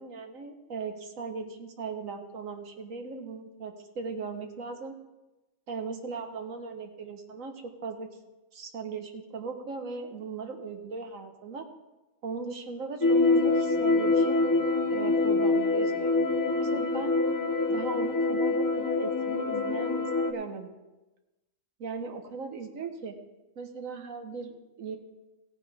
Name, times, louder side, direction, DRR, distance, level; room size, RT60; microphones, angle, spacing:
voice 1, 0.0-4.9 5.7-8.1 8.5-11.7 12.2-14.4 14.9-16.1 16.6-17.1 17.7-20.7 21.8-23.1 23.6-25.0, right 4 dB, 85° right, 5 dB, 1.6 m, -38 dB
sound 1, 13.0-20.3, left 3 dB, 20° left, 0.6 m, -25 dB
16.5 x 9.1 x 3.5 m, 1.1 s
omnidirectional pair, 1.4 m